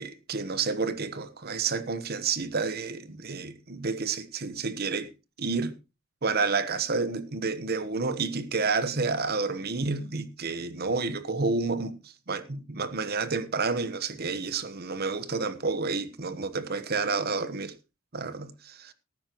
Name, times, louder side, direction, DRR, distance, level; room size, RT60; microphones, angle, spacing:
voice 1, 0.0-5.1 5.4-5.7 6.2-17.7 18.1-18.9, right 4 dB, 45° right, 1.1 m, -30 dB
18.0 x 9.6 x 3.0 m
head